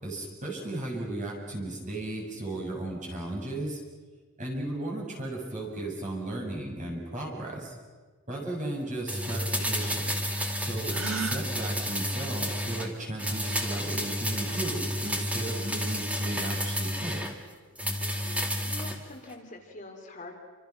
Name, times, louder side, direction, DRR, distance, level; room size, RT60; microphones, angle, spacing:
voice 1, 0.0-3.8 4.4-7.8 8.3-10.0 10.6-17.2, right 2 dB, 35° right, -1 dB, 6.8 m, -35 dB
sound 1, 9.1-12.9 13.2-17.3 17.8-19.0 19.3-19.4, equal, 5° right, 2.5 m, -31 dB
Gasp, 10.9-11.5, right 4 dB, 75° right, 1.7 m, -33 dB
voice 2, 18.0-20.4, left 2 dB, 35° left, 2 dB, 3.4 m, -46 dB
28.5 x 26.5 x 6.0 m, 1.4 s
head